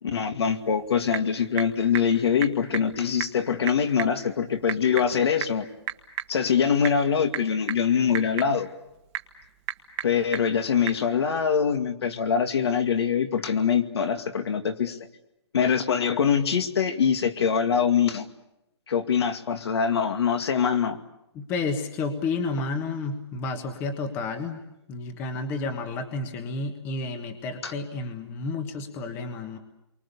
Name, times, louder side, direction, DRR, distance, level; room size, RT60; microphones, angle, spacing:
voice 1, 0.0-5.7 6.3-8.7 10.0-15.0 15.5-18.3 18.9-21.0 27.6-27.7, left 7 dB, 65° left, 7 dB, 2.3 m, -24 dB
Typing / Telephone, 0.6-11.1, right 13 dB, 20° right, 1.5 m, -37 dB
voice 2, 21.3-29.6, left 3 dB, 15° left, 7 dB, 1.4 m, -31 dB
29.5 x 24.0 x 7.0 m, 0.89 s
hypercardioid pair, 175°, 15 cm